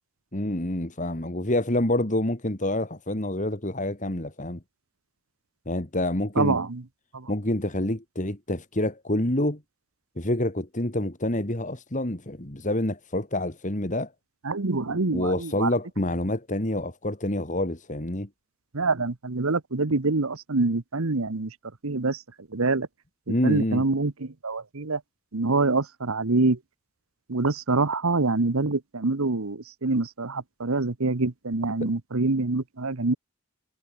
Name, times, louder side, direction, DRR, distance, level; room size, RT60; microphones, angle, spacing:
voice 1, 0.3-4.6 5.7-6.6 7.3-9.6 10.2-14.1 15.1-18.3 23.3-23.8, left 1 dB, 35° left, 2.4 m, -27 dB
voice 2, 6.4-6.8 7.1-7.3 14.4-15.7 18.7-21.5 21.8-22.9 23.3-25.0 25.3-26.6 27.3-33.2, right 3 dB, 70° right, 1.1 m, -26 dB
head